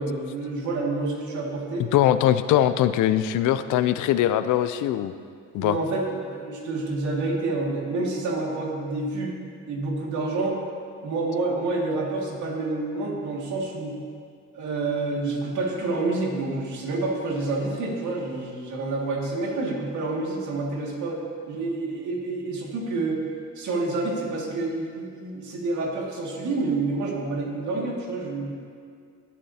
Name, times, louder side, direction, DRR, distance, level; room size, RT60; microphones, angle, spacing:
voice 1, 0.0-1.9 5.6-9.4 9.7-10.6 11.0-13.9 14.5-21.2 21.5-23.2 23.6-28.5, right 2 dB, 75° right, -2 dB, 2.2 m, -28 dB
voice 2, 1.8-5.1 5.5-5.8, left 12 dB, 80° left, 12 dB, 0.5 m, -21 dB
18.0 x 7.2 x 2.8 m, 2.2 s
cardioid pair, 90°, 30 cm